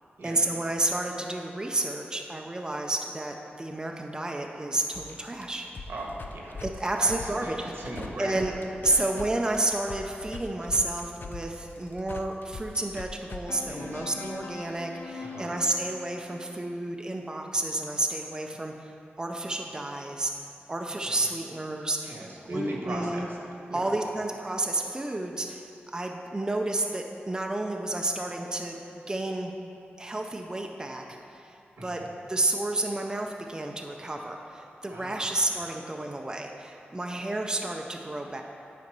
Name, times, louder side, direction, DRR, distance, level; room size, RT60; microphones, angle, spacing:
voice 1, 0.2-5.6 6.6-7.7 8.2-8.5 8.8-18.9 19.2-20.3 20.7-22.1 22.4-23.3 23.7-28.8 29.1-29.5 30.0-31.0 31.3-32.0 32.3-38.4, right 2 dB, 20° right, 2 dB, 0.5 m, -30 dB
sound 1, 4.9-9.3 9.5-16.8, left 4 dB, 55° left, 0.5 m, -42 dB
voice 2, 5.9-6.6 6.9-8.4 8.8-9.0 13.6-14.0 15.2-15.5 21.0-21.2 22.0-23.3 23.7-23.9 31.8-32.1 34.9-35.3, right 1 dB, 85° right, -2 dB, 1.3 m, -38 dB
9.6 x 4.3 x 5.3 m, 2.7 s
wide cardioid pair, 90°, 4 cm